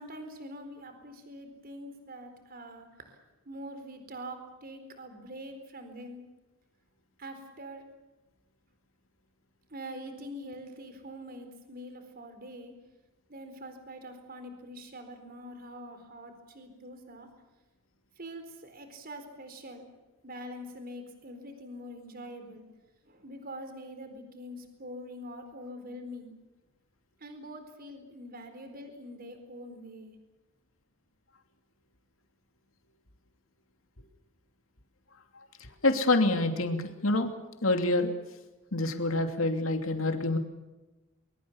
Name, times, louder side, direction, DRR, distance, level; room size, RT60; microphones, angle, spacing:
voice 1, 0.0-3.2 3.5-6.2 7.2-7.8 9.7-12.7 13.3-17.3 18.2-19.8 20.2-22.6 23.0-26.3 27.2-30.2, equal, 45° right, 7 dB, 4.2 m, -44 dB
voice 2, 35.6-37.3 37.6-38.1 38.7-40.4, left 2 dB, 75° left, 5 dB, 2.8 m, -27 dB
23.5 x 23.0 x 7.2 m, 1.1 s
head